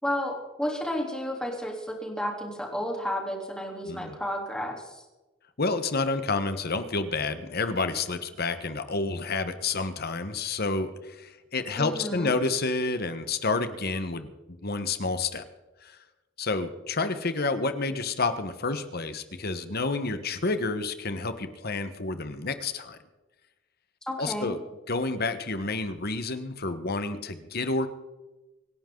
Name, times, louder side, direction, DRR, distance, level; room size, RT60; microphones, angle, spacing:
voice 1, 0.0-5.0 11.8-12.3 24.1-24.6, equal, 5° left, 0 dB, 3.3 m, -32 dB
voice 2, 5.6-14.3 14.6-15.4 15.8-16.0 16.4-23.0 24.2-24.6 24.9-27.9, left 3 dB, 50° left, 10 dB, 1.3 m, -29 dB
25.5 x 11.0 x 3.9 m, 1.1 s
head